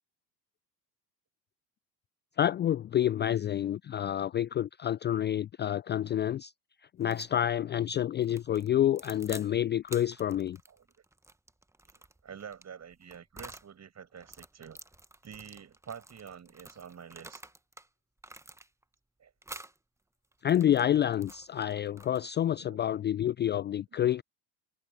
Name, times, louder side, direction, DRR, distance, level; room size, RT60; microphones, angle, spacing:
voice 1, 2.4-6.5 7.0-10.6 20.4-24.2, left 11 dB, 25° left, 0.4 m, -28 dB
sound 1, 7.0-7.3 8.2-9.5 9.8-13.7 14.2-17.9 18.2-18.9 19.4-19.8 20.3-22.4, right 2 dB, 5° right, 1.3 m, -50 dB
voice 2, 11.9-14.8 15.2-17.4 19.2-19.3 22.5-22.8, right 7 dB, 35° right, 6.8 m, -48 dB
hypercardioid pair, 65°, 45 cm